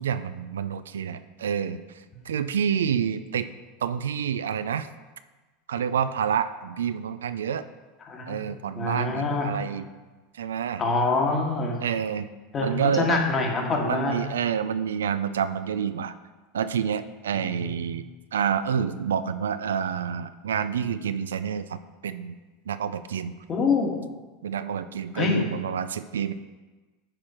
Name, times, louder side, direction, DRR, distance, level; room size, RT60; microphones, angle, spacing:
voice 1, 0.0-3.5 3.8-4.9 5.7-7.6 8.3-9.9 10.3-10.8 11.8-12.3 12.6-13.2 13.8-16.1 16.5-18.0 18.3-22.4 22.7-23.3 24.4-26.3, right 8 dB, 85° right, 12 dB, 0.3 m, -28 dB
voice 2, 8.8-9.5 10.8-11.8 12.5-14.2 17.7-17.8 23.5-24.1 25.1-25.5, left 3 dB, 35° left, 0 dB, 1.8 m, -25 dB
9.8 x 4.4 x 4.4 m, 1.2 s
hypercardioid pair, 95°, 0 cm